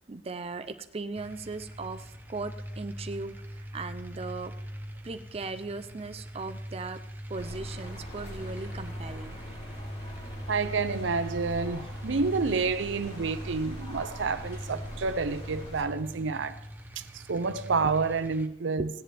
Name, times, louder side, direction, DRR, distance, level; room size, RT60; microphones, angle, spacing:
voice 1, 0.1-4.5 5.0-7.0 7.3-9.4 18.8-18.9, right 3 dB, 35° right, 0.5 m, -38 dB
sound 1, 1.1-18.5, equal, 10° right, 0.8 m, -41 dB
sound 2, 7.3-15.8, left 1 dB, 35° left, 2.7 m, -43 dB
voice 2, 10.5-16.6 17.0-18.9, right 4 dB, 85° right, 0.6 m, -29 dB
16.5 x 10.0 x 3.4 m
head